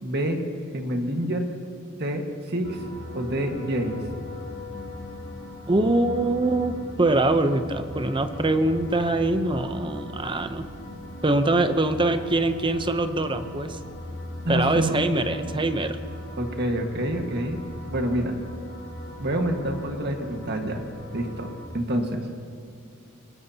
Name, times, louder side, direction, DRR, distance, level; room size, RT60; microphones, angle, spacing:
voice 1, 0.0-0.4 0.7-1.5 2.0-2.8 3.1-4.0 14.4-15.0 16.4-17.6 17.9-18.4 19.2-20.8 21.1-21.5 21.7-22.2, right 1 dB, 50° right, 3 dB, 1.6 m, -27 dB
sound 1, 2.6-21.7, left 1 dB, 70° left, 2.9 m, -39 dB
voice 2, 5.7-10.6 11.2-13.8 14.5-16.0, right 2 dB, 25° right, 9 dB, 0.7 m, -23 dB
25.5 x 19.5 x 2.9 m, 2.1 s
head